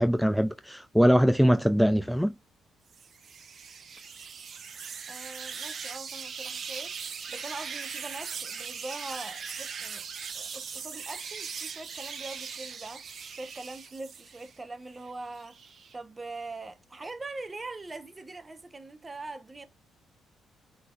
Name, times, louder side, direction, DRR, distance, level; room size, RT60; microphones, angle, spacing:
voice 1, 0.0-2.3, equal, ahead, 0.3 m, -22 dB
sound 1, 2.9-14.6 15.0-16.0, right 6 dB, 50° right, 1.1 m, -40 dB
voice 2, 5.1-6.9 7.3-10.0 10.3-13.0 13.4-19.7, right 2 dB, 25° right, 1.0 m, -42 dB
5.6 x 3.7 x 2.5 m
cardioid pair, 90°, 0 cm